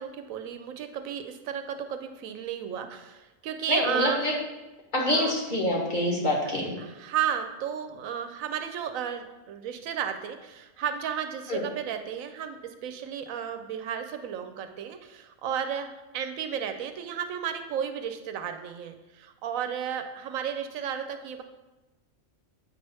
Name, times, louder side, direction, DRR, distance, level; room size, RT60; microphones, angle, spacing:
voice 1, 0.0-4.4 5.1-5.3 6.5-21.4, right 8 dB, 85° right, 7 dB, 1.0 m, -33 dB
voice 2, 3.7-4.3 4.9-6.7 11.5-11.6, left 1 dB, 40° left, -3 dB, 1.5 m, -26 dB
8.2 x 3.4 x 5.4 m, 1.1 s
omnidirectional pair, 1.4 m